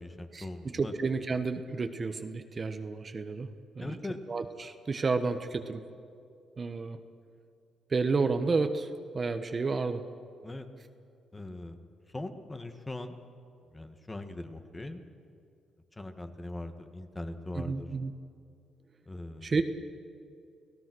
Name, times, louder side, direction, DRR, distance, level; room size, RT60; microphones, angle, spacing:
voice 1, 0.0-0.9 3.8-4.2 10.4-10.7 11.3-11.8 12.1-13.2 13.7-15.0 15.9-17.9 19.1-19.5, left 2 dB, 20° left, 7 dB, 1.7 m, -40 dB
voice 2, 0.7-3.5 3.7-4.0 4.3-5.8 6.6-7.0 7.9-8.9 9.1-10.0 17.5-18.1 19.4-19.6, right 4 dB, 35° right, 8 dB, 1.3 m, -31 dB
30.0 x 17.5 x 6.3 m, 2.3 s
cardioid pair, 90°, 0 cm